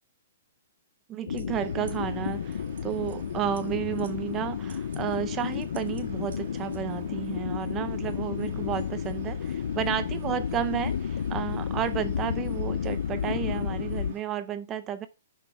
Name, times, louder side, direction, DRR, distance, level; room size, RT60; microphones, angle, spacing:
voice 1, 1.1-15.1, right 10 dB, 15° right, 0.6 m, -32 dB
sound 1, 1.3-14.1, left 7 dB, 65° left, 0.5 m, -32 dB
sound 2, 1.3-6.8, right 5 dB, 80° right, 2.3 m, -51 dB
sound 3, 1.6-14.2, right 5 dB, 35° right, 1.6 m, -48 dB
7.1 x 6.1 x 4.8 m
hypercardioid pair, 175°, 0 cm